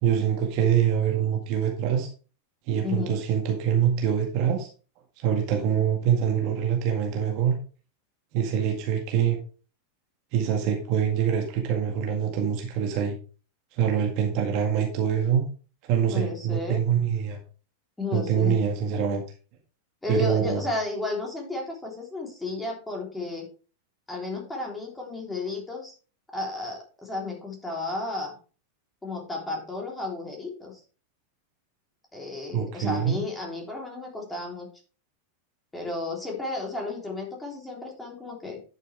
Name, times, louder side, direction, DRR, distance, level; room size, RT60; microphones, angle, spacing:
voice 1, 0.0-2.1 2.7-4.7 5.2-7.5 8.3-9.4 10.3-13.1 13.8-15.4 15.9-17.4 18.1-19.2 20.1-20.6 32.5-33.2, right 8 dB, 45° right, 3 dB, 1.8 m, -24 dB
voice 2, 2.8-3.2 16.1-16.8 18.0-18.6 20.0-23.5 24.1-25.9 26.3-28.3 29.0-30.8 32.1-34.7 35.7-38.6, left 3 dB, 10° left, -1 dB, 3.5 m, -33 dB
11.0 x 6.6 x 3.4 m, 0.37 s
figure-of-eight pair, 90°, 0 cm